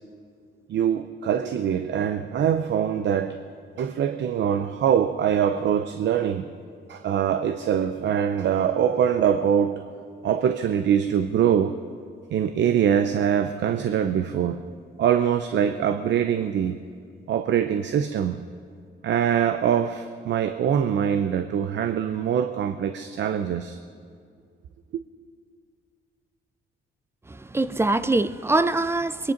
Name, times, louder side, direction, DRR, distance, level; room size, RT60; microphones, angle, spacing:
voice 1, 0.7-3.4 3.8-6.5 6.9-9.8 10.2-11.7 12.3-14.6 15.0-16.8 17.3-18.4 19.0-23.8, right 8 dB, 65° right, 9 dB, 0.7 m, -23 dB
voice 2, 27.3-29.3, right 2 dB, 10° right, 15 dB, 0.5 m, -23 dB
22.0 x 10.5 x 5.3 m, 2.2 s
cardioid pair, 90°, 20 cm